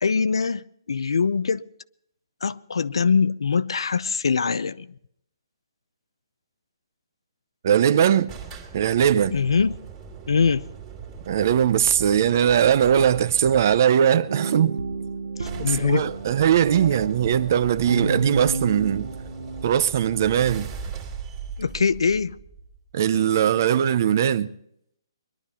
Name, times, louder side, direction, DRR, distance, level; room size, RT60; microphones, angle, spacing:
voice 1, 0.0-1.6 2.4-4.9 9.3-9.8 10.3-10.7 15.4-16.1 21.6-22.4, left 5 dB, 80° left, 0.7 m, -23 dB
voice 2, 7.6-8.3 8.7-9.3 11.3-14.8 15.6-19.1 19.6-20.7 22.9-24.5, right 9 dB, 35° right, 0.6 m, -20 dB
sound 1, 8.3-13.8 14.8-14.9 15.1-15.2 15.4-22.9, right 6 dB, 15° right, 2.1 m, -40 dB
sound 2, 14.3-19.7, right 3 dB, 85° right, 1.2 m, -31 dB
22.0 x 12.0 x 4.3 m
hypercardioid pair, 170°, 3 cm